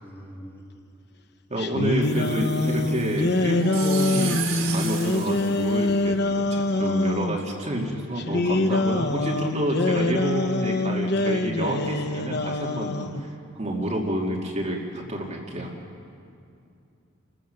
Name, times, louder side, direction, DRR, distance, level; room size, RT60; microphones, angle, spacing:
voice 1, 0.0-0.7 2.0-2.3 2.7-2.8, equal, 10° left, -2 dB, 3.0 m, -43 dB
voice 2, 1.5-13.3 13.6-15.8, right 1 dB, 35° right, -1 dB, 2.3 m, -29 dB
sound 1, 1.6-7.4 8.2-13.2, left 2 dB, 55° left, 0.9 m, -25 dB
sound 2, 2.0-6.4, right 7 dB, 75° right, 2.7 m, -35 dB
29.0 x 15.0 x 6.7 m, 2.5 s
head